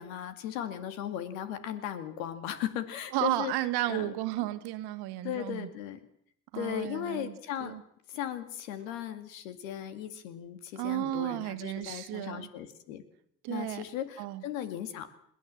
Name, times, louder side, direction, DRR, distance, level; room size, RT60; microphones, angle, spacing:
voice 1, 0.0-3.5 3.9-4.1 4.4-4.5 5.2-6.0 6.5-7.7 8.1-13.0 13.5-15.1, left 10 dB, 90° left, 9 dB, 2.2 m, -37 dB
voice 2, 3.1-5.7 6.5-7.8 10.8-12.5 13.4-13.8 14.2-14.4, right 16 dB, 75° right, 11 dB, 1.6 m, -33 dB
21.5 x 17.5 x 7.6 m, 0.70 s
hypercardioid pair, 55°, 39 cm